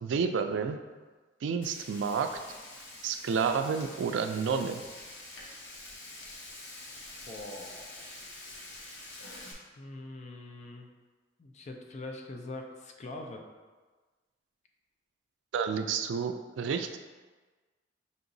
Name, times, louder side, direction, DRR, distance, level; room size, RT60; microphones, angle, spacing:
voice 1, 0.0-0.8 1.4-2.3 3.0-4.8 15.5-17.0, right 6 dB, 85° right, 7 dB, 0.3 m, -30 dB
Frying (food), 1.6-9.5, left 2 dB, 90° left, 0.8 m, -46 dB
voice 2, 7.0-8.1 9.8-10.9 11.4-13.4, left 2 dB, 40° left, 3 dB, 0.4 m, -43 dB
5.4 x 2.9 x 2.6 m, 1.3 s
head